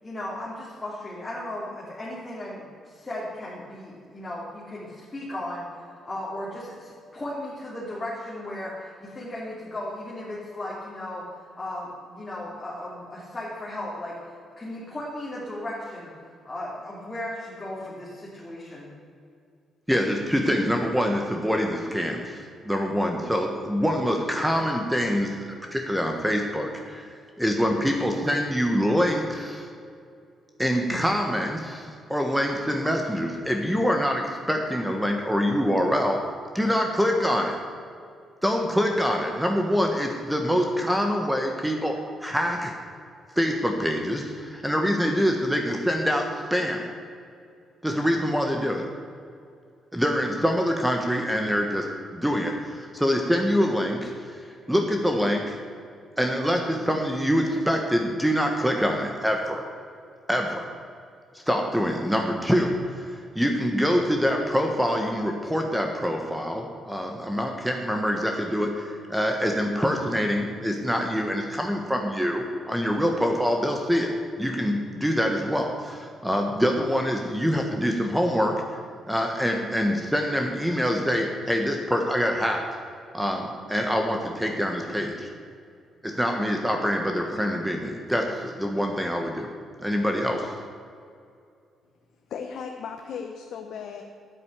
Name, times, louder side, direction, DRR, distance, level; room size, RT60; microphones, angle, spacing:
voice 1, 0.0-18.9, left 1 dB, 20° left, -7 dB, 3.4 m, -36 dB
voice 2, 19.9-27.1 27.4-29.7 30.6-36.3 36.5-37.6 38.4-42.7 43.3-46.9 47.8-48.9 49.9-54.4 54.7-55.6 56.2-59.7 60.3-60.7 61.3-74.1 74.4-78.6 79.1-82.6 83.1-85.3 86.0-89.5 89.8-90.5, equal, 5° right, 2 dB, 1.3 m, -25 dB
voice 3, 92.3-94.0, left 6 dB, 70° left, 3 dB, 1.1 m, -36 dB
10.5 x 9.3 x 8.2 m, 2.3 s
cardioid pair, 90°, 0 cm